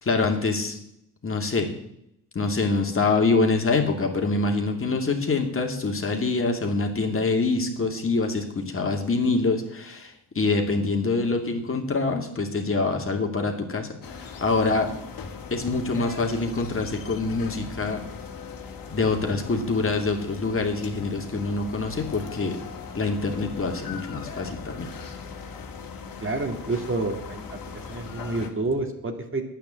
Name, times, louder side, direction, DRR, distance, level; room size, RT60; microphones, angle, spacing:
voice 1, 0.0-0.8 1.2-1.7 2.3-14.9 15.5-18.0 18.9-22.6 22.9-24.9, left 3 dB, 35° left, 3 dB, 2.5 m, -25 dB
sound 1, 14.0-28.5, left 5 dB, 60° left, 2.2 m, -39 dB
voice 2, 26.2-27.6 27.9-29.4, right 2 dB, 35° right, 4 dB, 2.4 m, -28 dB
10.5 x 9.1 x 7.6 m, 0.77 s
cardioid pair, 85°, 38 cm